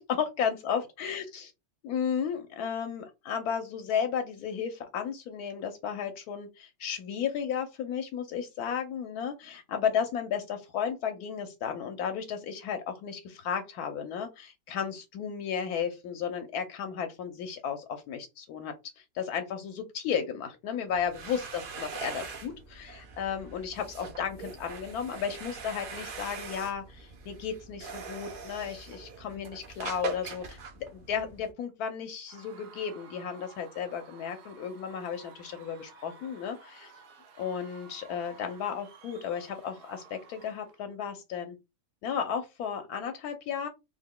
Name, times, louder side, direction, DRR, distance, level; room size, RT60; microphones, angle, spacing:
voice 1, 0.0-1.5 1.8-30.6 30.9-36.9 37.4-41.6 42.0-43.7, left 7 dB, 80° left, 6 dB, 1.1 m, -34 dB
sound 1, 20.9-31.5, right 4 dB, 60° right, 0.5 m, -42 dB
Screaming / Cheering / Crowd, 32.3-40.8, right 5 dB, 85° right, 1.2 m, -53 dB
3.4 x 2.1 x 3.6 m, 0.24 s
omnidirectional pair, 1.6 m